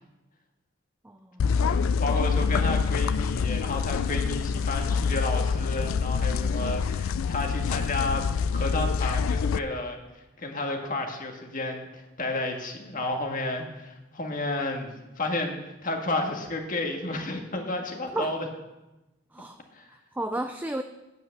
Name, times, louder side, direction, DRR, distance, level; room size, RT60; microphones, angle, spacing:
voice 1, 1.0-2.0 18.1-18.4 19.3-19.6 19.9-20.8, right 1 dB, 10° right, 6 dB, 0.4 m, -34 dB
sound 1, 1.4-9.6, left 5 dB, 90° left, 0.3 m, -26 dB
voice 2, 1.6-10.0 10.4-14.9 15.2-18.4 19.7-19.9, left 2 dB, 45° left, 3 dB, 1.7 m, -31 dB
9.1 x 8.2 x 7.9 m, 1.0 s
head